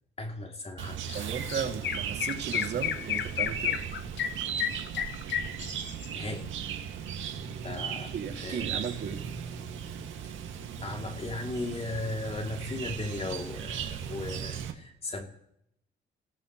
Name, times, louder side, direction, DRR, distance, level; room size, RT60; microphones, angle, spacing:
voice 1, 0.2-1.4 5.0-5.1 6.1-6.5 7.6-8.9 10.2-10.3 10.8-15.3, left 2 dB, 30° left, 3 dB, 2.8 m, -37 dB
Chirp tweet, 0.8-14.7, right 8 dB, 75° right, 2.0 m, -37 dB
Chirp tweet 2, 1.1-1.2 1.5-6.1, left 9 dB, 65° left, 1.2 m, -32 dB
voice 2, 1.1-3.8 7.9-9.2, right 7 dB, 60° right, 3 dB, 2.4 m, -35 dB
27.5 x 16.5 x 3.1 m, 0.77 s
cardioid pair, 90°, 20 cm